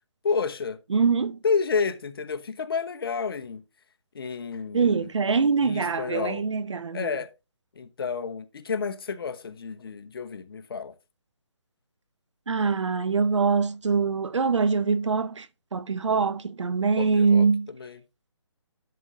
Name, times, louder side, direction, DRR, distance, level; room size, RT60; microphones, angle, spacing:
voice 1, 0.2-0.8 1.4-3.6 4.1-5.1 5.6-6.4 6.9-7.3 7.8-10.9 17.0-17.5 17.8-18.0, left 5 dB, 50° left, 1.0 m, -30 dB
voice 2, 0.9-1.4 4.7-7.1 12.5-15.5 15.7-17.7, right 5 dB, 75° right, 0.8 m, -23 dB
10.5 x 6.8 x 2.5 m
hypercardioid pair, 160°, 15 cm